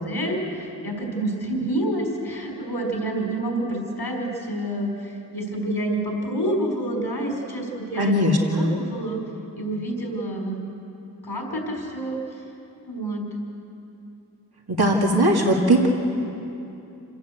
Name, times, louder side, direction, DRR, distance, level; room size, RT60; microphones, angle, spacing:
voice 1, 0.0-9.2 9.6-10.6 11.2-12.4 12.9-13.2, right 1 dB, 80° left, 0 dB, 4.7 m, -28 dB
voice 2, 8.0-8.7 14.7-15.9, right 1 dB, 80° right, 0 dB, 2.3 m, -19 dB
27.5 x 16.5 x 8.1 m, 2.9 s
wide cardioid pair, 45°, 38 cm